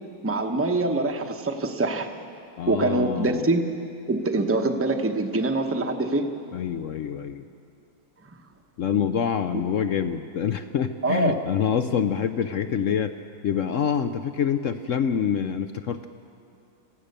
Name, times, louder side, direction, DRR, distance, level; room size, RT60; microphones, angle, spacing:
voice 1, 0.2-2.1 2.7-3.8 4.1-6.3 9.5-9.6 11.0-11.4, right 2 dB, 10° right, 5 dB, 0.6 m, -24 dB
voice 2, 2.6-3.4 6.5-7.4 8.8-13.2 13.4-16.1, left 8 dB, 75° left, 9 dB, 0.7 m, -26 dB
26.5 x 16.0 x 6.7 m, 2.6 s
omnidirectional pair, 2.0 m